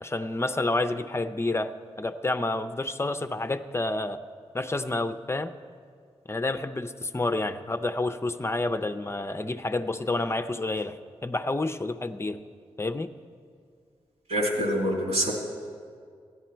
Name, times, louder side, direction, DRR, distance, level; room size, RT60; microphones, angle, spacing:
voice 1, 0.0-4.2 4.5-5.5 6.3-12.4 12.8-13.1, left 2 dB, 25° left, 10 dB, 0.5 m, -29 dB
voice 2, 14.3-15.3, equal, 85° right, -2 dB, 3.0 m, -25 dB
15.5 x 11.0 x 4.4 m, 2.1 s
cardioid pair, 55°, 11 cm